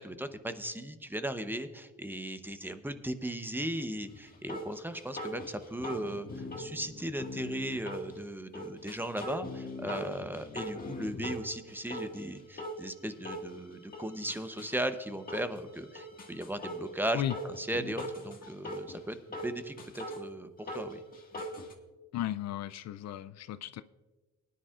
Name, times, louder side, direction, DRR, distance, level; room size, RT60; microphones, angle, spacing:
voice 1, 0.0-19.2 19.4-21.0, right 1 dB, 5° right, 9 dB, 0.8 m, -37 dB
sound 1, 4.1-4.2 4.5-8.1 8.5-11.4 11.7-12.2 12.6-12.8 13.3-13.5 13.9-14.8 15.3-15.6 16.0-16.9 17.3-19.0 19.3-20.2 20.7-21.7, equal, 30° left, 1.8 m, -40 dB
voice 2, 22.1-23.8, left 12 dB, 60° left, 13 dB, 0.4 m, -35 dB
19.5 x 10.5 x 2.4 m, 1.2 s
cardioid pair, 90°, 30 cm